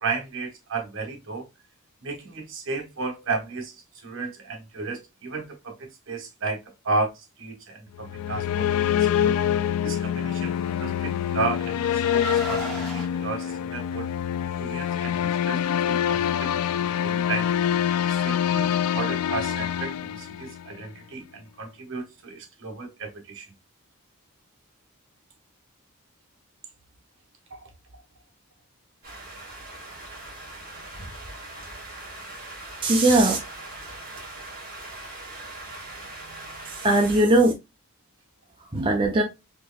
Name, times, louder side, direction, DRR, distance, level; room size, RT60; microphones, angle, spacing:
voice 1, 0.0-1.5 2.0-9.4 9.8-14.1 14.6-17.5 18.0-23.5 27.5-27.7, right 3 dB, 60° right, 1.2 m, -33 dB
sound 1, 8.0-20.8, left 9 dB, 80° left, 0.3 m, -25 dB
Car, 10.6-13.1, right 1 dB, ahead, 2.1 m, -35 dB
sound 2, 29.0-37.2, right 2 dB, 40° right, 2.1 m, -40 dB
voice 2, 32.8-33.4 36.7-37.5 38.7-39.2, right 1 dB, 25° right, 0.7 m, -19 dB
4.4 x 3.1 x 2.3 m
head